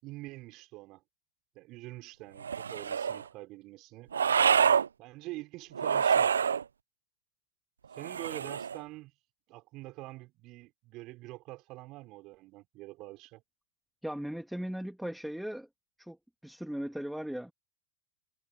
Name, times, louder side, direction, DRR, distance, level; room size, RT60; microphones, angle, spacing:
voice 1, 0.0-1.0 1.5-4.1 5.0-6.5 7.9-9.1 9.5-13.4, right 20 dB, 40° right, 6.2 m, -45 dB
sound 1, 2.4-3.2 4.1-4.9 5.7-6.6 8.0-8.8, right 7 dB, 70° right, 0.4 m, -26 dB
voice 2, 14.0-15.7 16.0-16.2 16.4-17.5, equal, ahead, 3.0 m, -37 dB
figure-of-eight pair, 90°, 0 cm